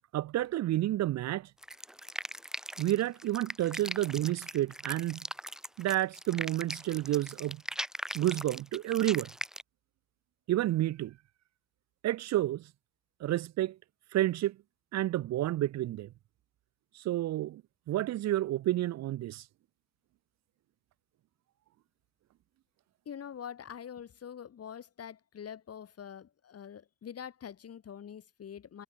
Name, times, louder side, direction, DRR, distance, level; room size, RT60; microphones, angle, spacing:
voice 1, 0.1-1.5 2.8-5.2 5.8-7.6 8.1-9.3 10.5-11.1 12.0-12.7 13.2-13.8 14.1-14.6 14.9-16.1 16.9-17.6 17.9-19.4, right 14 dB, 60° right, 0.5 m, -30 dB
sound 1, 1.6-9.6, equal, ahead, 0.8 m, -40 dB
voice 2, 23.0-28.8, left 8 dB, 55° left, 3.1 m, -45 dB
cardioid pair, 90°, 30 cm